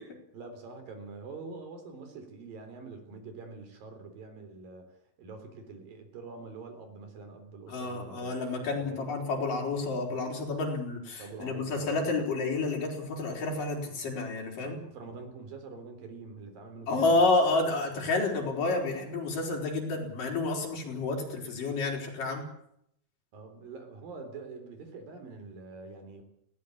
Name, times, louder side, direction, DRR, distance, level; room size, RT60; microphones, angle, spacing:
voice 1, 0.3-4.9 5.2-8.4 8.8-9.1 11.2-11.9 14.7-17.2 23.3-26.2, right 4 dB, 70° right, 7 dB, 5.5 m, -45 dB
voice 2, 7.7-14.8 16.9-22.5, left 3 dB, 65° left, 0 dB, 6.3 m, -30 dB
20.0 x 17.0 x 8.7 m, 0.74 s
omnidirectional pair, 4.1 m